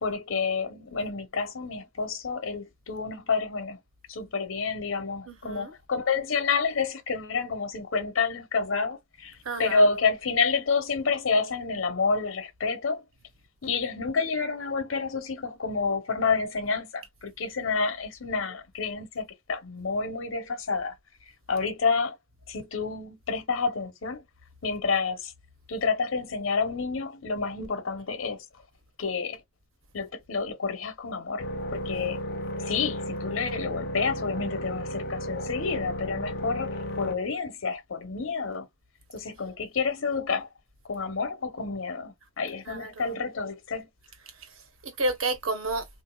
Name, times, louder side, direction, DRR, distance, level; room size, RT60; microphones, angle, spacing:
voice 1, 0.0-3.8 4.1-13.0 13.6-20.9 21.5-22.2 22.5-24.2 24.6-25.3 25.7-28.4 29.0-29.4 29.9-31.4 31.7-32.2 32.6-38.7 39.1-40.5 40.9-43.9, left 4 dB, 70° left, 0.9 m, -29 dB
voice 2, 5.3-5.7 9.4-9.9 42.6-43.2 44.3-45.9, right 2 dB, 85° right, 1.3 m, -32 dB
sound 1, 31.4-37.2, equal, 50° left, 0.5 m, -34 dB
3.7 x 2.6 x 2.3 m
head